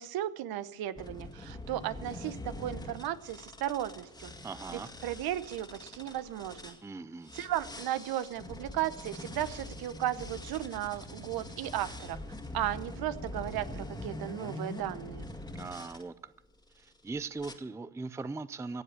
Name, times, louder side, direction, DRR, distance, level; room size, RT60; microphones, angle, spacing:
voice 1, 0.0-4.3 4.7-6.8 7.3-12.2 12.5-15.3, right 12 dB, 65° right, 14 dB, 1.0 m, -35 dB
sound 1, 1.0-6.8 7.2-16.0 16.7-17.0 17.4-17.5, left 1 dB, 10° left, 2.0 m, -44 dB
voice 2, 4.4-4.9 6.8-7.4 15.5-16.3 16.8-18.8, right 3 dB, 5° right, 15 dB, 0.5 m, -40 dB
16.0 x 7.7 x 8.3 m, 0.93 s
cardioid pair, 100°, 40 cm